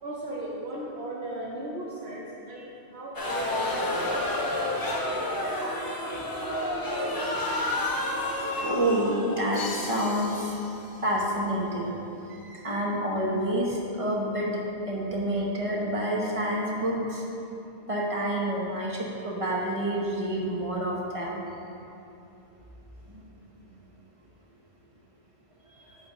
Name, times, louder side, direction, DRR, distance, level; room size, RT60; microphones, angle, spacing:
voice 1, 0.0-4.4 4.7-4.9, right 1 dB, 70° right, -4 dB, 1.0 m, -37 dB
sound 1, 3.1-10.3, left 1 dB, 20° left, 0.8 m, -30 dB
voice 2, 8.6-10.5 11.0-12.0 12.3-17.2 17.9-21.4 25.9-26.0, right 1 dB, 30° right, -4 dB, 1.0 m, -28 dB
Crash cymbal, 9.5-11.4, left 4 dB, 75° left, 0.9 m, -41 dB
8.4 x 3.4 x 5.2 m, 2.9 s
omnidirectional pair, 1.1 m